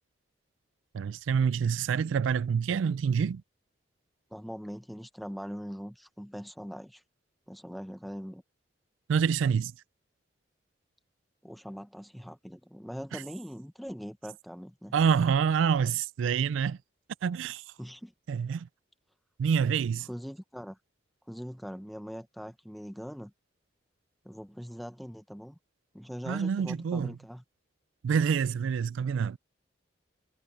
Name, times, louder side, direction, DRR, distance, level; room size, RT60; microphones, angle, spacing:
voice 1, 0.9-3.4 9.1-9.7 13.1-13.2 14.9-16.8 17.2-17.6 18.3-18.7 19.4-20.1 26.3-27.1 28.0-29.4, right 6 dB, 90° right, 0.3 m, -27 dB
voice 2, 4.3-7.0 7.5-8.4 11.4-14.9 17.8-18.1 20.1-20.8 21.3-23.3 24.2-25.6 25.9-27.4, equal, ahead, 0.8 m, -41 dB
head